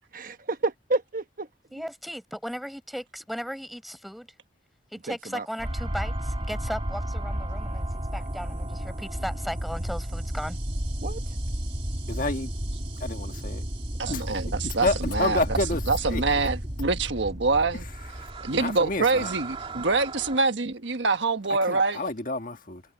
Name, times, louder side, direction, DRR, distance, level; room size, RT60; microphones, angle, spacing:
voice 1, 0.1-1.5 1.7-1.8 5.1-5.4 11.0-11.2 14.1-14.2, right 2 dB, 50° right, 1.3 m, -30 dB
voice 2, 1.7-4.3 4.9-7.9 8.1-10.6, equal, ahead, 5.6 m, -36 dB
sound 1, 5.6-20.4, right 1 dB, 30° right, 2.3 m, -33 dB
voice 3, 12.1-12.5 13.0-13.7 14.1-14.2 14.6-15.8 16.1-16.2 18.2-18.3 18.6-19.3 21.7-22.8, left 2 dB, 45° left, 1.7 m, -29 dB
voice 4, 14.0-15.6 15.9-17.8 18.4-22.0, right 3 dB, 80° right, 1.4 m, -25 dB
head